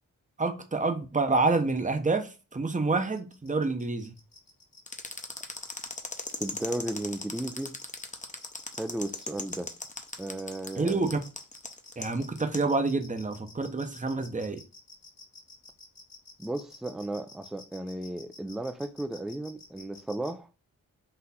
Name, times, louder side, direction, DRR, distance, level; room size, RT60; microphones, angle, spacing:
voice 1, 0.4-4.1 10.8-11.2 12.0-14.6, right 3 dB, 20° right, 0.8 m, -28 dB
sound 1, 3.2-20.3, left 3 dB, 65° left, 1.6 m, -51 dB
sound 2, 4.9-12.6, left 3 dB, 20° left, 0.8 m, -38 dB
voice 2, 6.4-7.7 8.8-9.7 10.2-11.1 16.4-20.5, right 1 dB, ahead, 0.4 m, -35 dB
4.2 x 2.5 x 4.1 m
cardioid pair, 45°, 35 cm